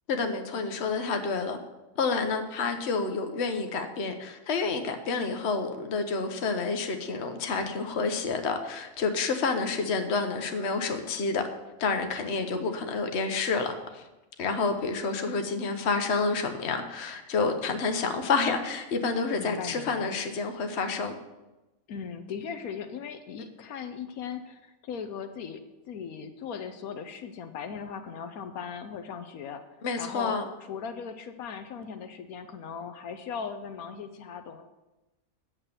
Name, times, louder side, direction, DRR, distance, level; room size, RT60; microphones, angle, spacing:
voice 1, 0.1-1.6 2.0-11.5 11.8-14.0 14.4-21.2 29.8-30.4, left 4 dB, 55° left, 6 dB, 1.2 m, -29 dB
voice 2, 12.5-13.1 19.4-20.2 21.9-29.6 30.0-30.4 30.7-34.7, left 6 dB, 85° left, 7 dB, 1.2 m, -38 dB
8.8 x 7.3 x 6.7 m, 1.0 s
omnidirectional pair, 1.5 m